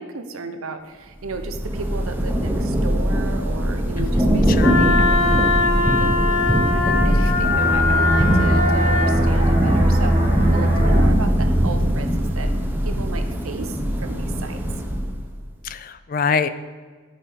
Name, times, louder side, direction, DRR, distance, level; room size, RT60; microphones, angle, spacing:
voice 1, 0.0-12.1 12.4-12.5 12.8-14.6, right 3 dB, 90° right, 7 dB, 0.8 m, -34 dB
Thunder / Rain, 1.2-15.3, equal, 10° right, 0.8 m, -21 dB
voice 2, 4.0-4.8 15.6-16.5, left 5 dB, 40° left, 13 dB, 0.4 m, -25 dB
Wind instrument woodwind instrument, 4.6-9.1, left 3 dB, 70° left, 1.2 m, -21 dB
sound 1, 7.4-12.8 13.1-13.4, right 1 dB, 30° right, 1.9 m, -22 dB
11.0 x 6.0 x 4.7 m, 1.5 s
head